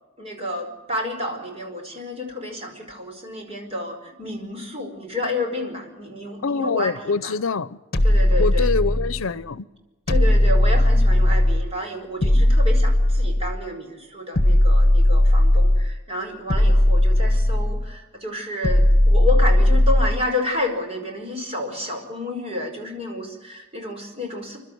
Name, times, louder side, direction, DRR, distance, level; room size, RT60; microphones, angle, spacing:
voice 1, 0.2-7.3 8.0-8.7 10.1-24.6, left 1 dB, 30° right, 5.0 m, -30 dB
voice 2, 6.4-7.8 8.4-9.7, left 4 dB, 90° left, 0.7 m, -25 dB
sound 1, 7.9-9.2 10.1-11.7 12.2-13.6 14.3-16.0 16.5-17.9 18.6-20.2, left 1 dB, 50° left, 1.3 m, -17 dB
30.0 x 12.0 x 9.2 m
head